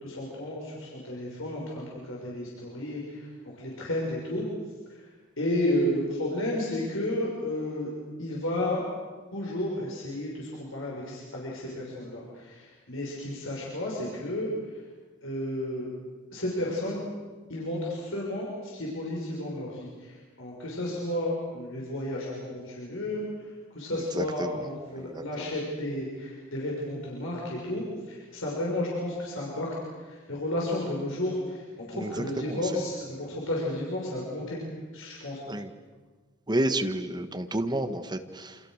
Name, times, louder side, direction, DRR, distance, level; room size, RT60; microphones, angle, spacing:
voice 1, 0.0-4.4 4.9-7.9 8.2-8.8 9.3-14.9 15.2-15.9 16.3-17.0 17.5-34.6 34.9-35.4, left 1 dB, 70° left, -3 dB, 6.4 m, -32 dB
voice 2, 23.9-24.5 25.0-25.2 31.9-32.1 32.4-32.6 35.5-35.7 36.5-38.6, right 1 dB, 20° right, 8 dB, 1.6 m, -30 dB
29.0 x 27.5 x 6.6 m, 1.4 s
head